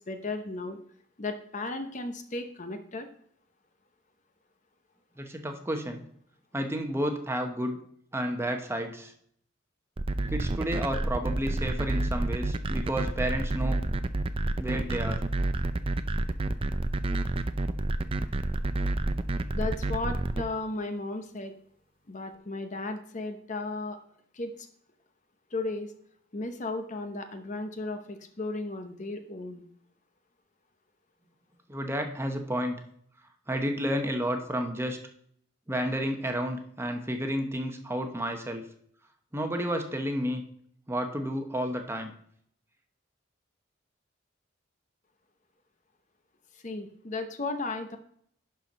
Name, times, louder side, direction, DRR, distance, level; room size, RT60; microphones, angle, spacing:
voice 1, 0.1-0.8 1.2-3.1 19.5-21.5 22.1-24.0 24.3-24.7 25.5-25.9 26.3-29.6 46.5-48.0, left 2 dB, 40° left, 7 dB, 0.8 m, -35 dB
voice 2, 5.2-6.0 6.5-7.8 8.1-9.1 10.3-13.8 14.6-15.2 31.7-32.8 33.5-35.0 35.7-38.6 39.3-40.4 40.9-42.1, equal, 15° right, 5 dB, 0.9 m, -31 dB
sound 1, 10.0-20.4, right 2 dB, 30° right, 0.5 m, -28 dB
11.0 x 4.6 x 5.2 m, 0.64 s
head